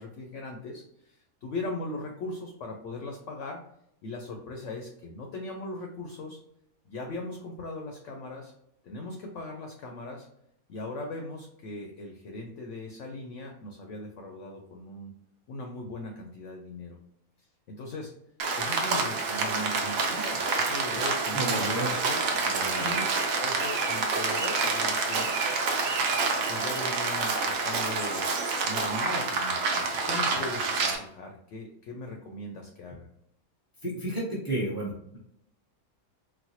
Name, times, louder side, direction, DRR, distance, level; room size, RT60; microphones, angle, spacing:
voice 1, 0.0-3.6 4.0-6.4 6.9-8.5 8.8-10.3 10.7-15.1 15.5-17.0 17.7-18.1 18.6-22.2 22.8-23.1 23.4-25.3 26.5-28.3 28.6-33.1, left 2 dB, 65° left, 2 dB, 0.8 m, -39 dB
Rain, 18.4-31.0, right 4 dB, 70° right, 1.0 m, -28 dB
voice 2, 21.3-21.9 22.4-22.9 33.8-35.2, right 1 dB, 20° right, -5 dB, 0.8 m, -32 dB
4.1 x 2.2 x 2.8 m, 0.74 s
omnidirectional pair, 1.6 m